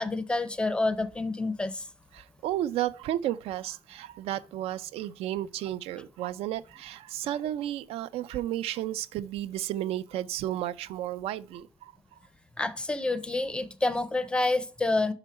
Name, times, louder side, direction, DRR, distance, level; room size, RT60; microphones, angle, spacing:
voice 1, 0.0-1.9 12.6-15.1, left 2 dB, 10° left, 0.5 m, -28 dB
voice 2, 2.1-12.2, right 12 dB, 80° right, 0.4 m, -33 dB
6.1 x 5.0 x 5.5 m
cardioid pair, 170°, 10 cm